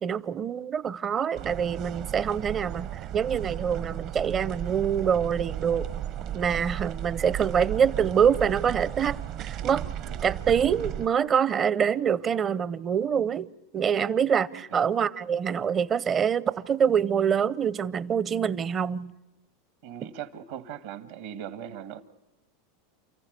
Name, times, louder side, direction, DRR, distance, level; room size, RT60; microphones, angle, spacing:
voice 1, 0.0-2.9 3.1-5.9 6.3-9.9 10.2-13.5 13.7-19.1, right 7 dB, 30° right, 0.7 m, -25 dB
sound 1, 1.4-11.1, right 11 dB, 50° right, 1.1 m, -35 dB
voice 2, 19.8-22.0, right 9 dB, 70° right, 1.9 m, -39 dB
29.5 x 15.0 x 8.2 m
hypercardioid pair, 100°, 0 cm